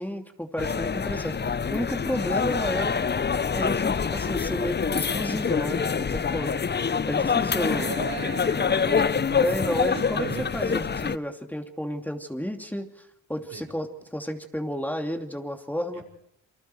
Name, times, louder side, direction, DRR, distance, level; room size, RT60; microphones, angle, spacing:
voice 1, 0.0-3.0 3.5-6.5 7.1-7.9 9.4-10.3 10.5-12.9 13.3-16.0, equal, 5° left, 3 dB, 2.8 m, -31 dB
sound 1, 0.6-11.2, left 6 dB, 30° left, 0.8 m, -26 dB
voice 2, 5.3-5.6 7.7-9.4 9.9-11.0 13.5-13.7 15.9-16.0, right 5 dB, 60° right, 0 dB, 5.3 m, -37 dB
28.5 x 25.5 x 4.7 m, 0.78 s
hypercardioid pair, 50°, 36 cm